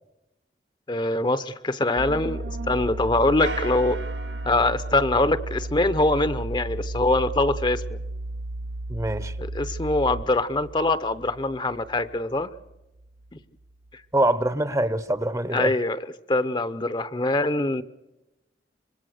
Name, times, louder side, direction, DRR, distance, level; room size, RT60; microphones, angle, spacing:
voice 1, 0.9-4.0 4.4-7.8 9.4-12.5 15.5-16.0 16.3-17.8, left 2 dB, 25° left, 14 dB, 0.7 m, -23 dB
sound 1, 2.0-13.3 13.6-13.9, right 1 dB, 55° right, 0.8 m, -34 dB
sound 2, 3.4-6.1, right 3 dB, 80° right, 1.4 m, -38 dB
voice 2, 8.9-9.3 14.1-15.7, right 1 dB, 20° right, 15 dB, 0.8 m, -24 dB
26.0 x 21.5 x 6.4 m, 0.97 s
head